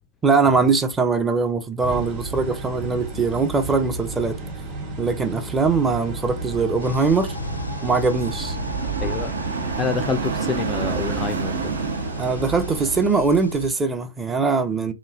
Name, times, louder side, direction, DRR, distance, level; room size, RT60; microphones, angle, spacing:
voice 1, 0.2-4.4 5.0-7.3 7.8-8.6 12.2-14.9, right 4 dB, 15° right, 0.6 m, -21 dB
sound 1, 1.8-13.0, right 3 dB, 40° right, 1.2 m, -32 dB
sound 2, 5.8-13.2, right 6 dB, 65° right, 0.6 m, -31 dB
sound 3, 6.8-13.7, left 3 dB, 85° left, 0.4 m, -36 dB
voice 2, 9.0-9.3 9.8-11.7, left 6 dB, 20° left, 0.3 m, -27 dB
3.1 x 2.3 x 2.4 m
figure-of-eight pair, 110°, 0 cm